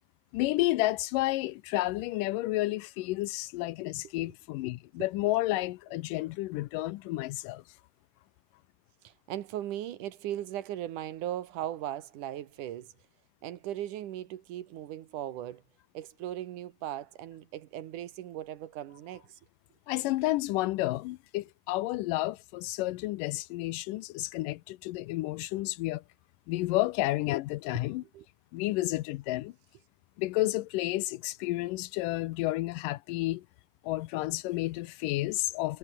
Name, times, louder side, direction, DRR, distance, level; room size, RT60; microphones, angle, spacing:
voice 1, 0.3-7.6 19.9-26.0 26.5-28.0 28.5-29.5 30.2-33.5 33.8-35.8, left 18 dB, 85° left, 2.2 m, -31 dB
voice 2, 9.0-12.9 13.4-15.6 15.9-19.4 27.7-27.8 28.1-28.3, right 12 dB, 70° right, 2.6 m, -38 dB
omnidirectional pair, 3.9 m